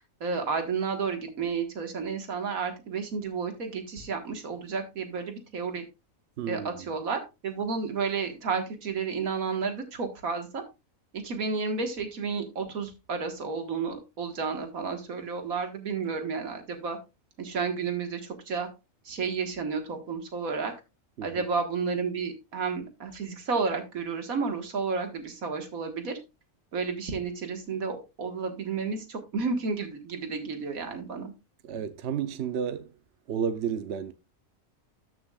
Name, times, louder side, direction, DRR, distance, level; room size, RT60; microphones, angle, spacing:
voice 1, 0.2-5.8 6.5-10.6 11.1-17.0 17.4-18.7 19.1-20.7 21.2-26.2 26.7-31.3, right 5 dB, 85° right, 2.0 m, -31 dB
voice 2, 6.4-6.7 21.2-21.4 31.6-32.9 33.3-34.1, right 7 dB, 60° right, 0.9 m, -31 dB
13.5 x 6.2 x 2.4 m
omnidirectional pair, 1.4 m